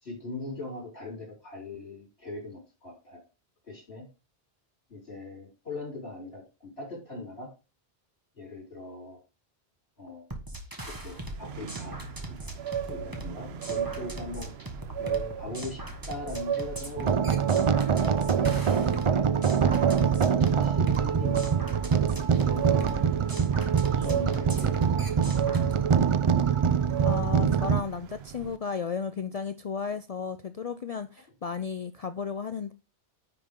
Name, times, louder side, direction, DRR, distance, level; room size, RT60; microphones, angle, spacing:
voice 1, 0.0-3.2 3.7-4.0 4.9-7.5 8.4-9.2 10.0-10.2 10.8-12.0 12.9-14.5 15.0-17.5 18.0-19.4 20.5-21.6 22.1-23.2 23.8-25.0 25.6-25.7, left 2 dB, 70° left, 4.1 m, -40 dB
sound 1, 10.3-25.7, right 1 dB, 20° right, 1.5 m, -40 dB
sound 2, 11.1-28.6, right 9 dB, 75° right, 0.9 m, -36 dB
sound 3, 17.0-27.8, right 7 dB, 50° right, 0.4 m, -24 dB
voice 2, 27.0-32.7, left 6 dB, 50° left, 0.5 m, -34 dB
10.0 x 5.5 x 3.7 m
omnidirectional pair, 1.1 m